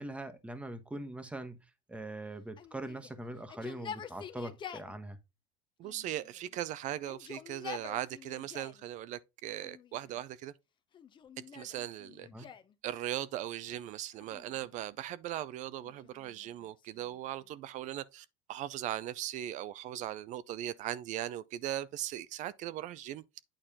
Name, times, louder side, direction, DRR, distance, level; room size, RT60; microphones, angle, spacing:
voice 1, 0.0-1.6 1.9-5.2 12.3-12.5, right 1 dB, 10° right, 1.1 m, -42 dB
Yell, 2.6-4.9 5.8-6.6 7.0-8.8 9.6-10.2 10.9-12.7 14.1-15.0 15.8-17.5, left 8 dB, 30° left, 0.8 m, -48 dB
voice 2, 5.8-10.5 11.5-12.3 12.8-23.4, right 12 dB, 50° right, 0.5 m, -39 dB
9.0 x 4.3 x 3.6 m
supercardioid pair, 120°, 16 cm